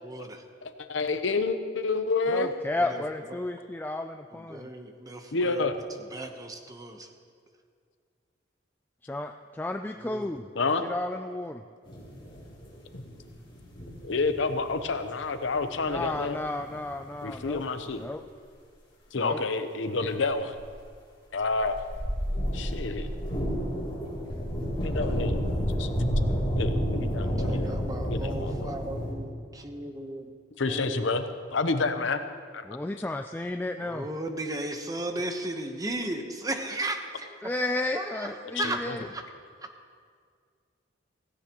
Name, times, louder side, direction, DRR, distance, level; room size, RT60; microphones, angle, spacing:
voice 1, 0.0-0.4 2.8-3.0 3.3-3.4 4.3-5.7 6.1-7.1 9.9-10.3 27.2-30.3 30.6-31.1 33.8-37.5 37.9-38.8 39.0-39.2, right 1 dB, 20° right, 5 dB, 1.0 m, -36 dB
voice 2, 0.6-2.5 5.3-5.7 10.5-10.9 12.9-13.0 14.0-16.4 17.2-18.1 19.1-20.5 21.3-21.8 22.5-23.1 24.6-25.4 25.8-25.9 26.6-27.8 28.0-28.7 30.6-31.3 31.5-32.2 32.5-32.6 38.4-39.0, left 3 dB, 80° left, 9 dB, 0.8 m, -29 dB
voice 3, 2.3-4.7 9.1-10.5 10.8-11.6 15.9-17.6 18.0-18.2 19.2-19.4 32.7-34.0 37.4-39.0, left 2 dB, 10° left, 5 dB, 0.3 m, -33 dB
sound 1, 11.8-15.1 15.5-18.0 20.6-20.7 21.5-29.1, equal, 30° left, 3.6 m, -31 dB
16.5 x 16.5 x 3.0 m, 2.1 s
head